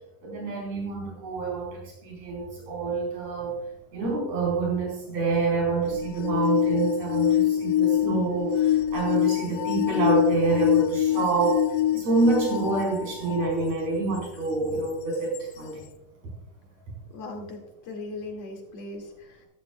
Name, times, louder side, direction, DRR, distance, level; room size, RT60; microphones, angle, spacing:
voice 1, 0.2-3.6 3.9-11.7 11.9-15.9, right 3 dB, 60° right, -2 dB, 5.8 m, -27 dB
sound 1, 5.9-13.5 14.2-14.3 15.3-15.4, left 12 dB, 75° left, 1.4 m, -25 dB
voice 2, 17.1-19.5, left 2 dB, 60° left, 2 dB, 3.3 m, -39 dB
13.5 x 13.0 x 2.3 m, 0.84 s
omnidirectional pair, 3.5 m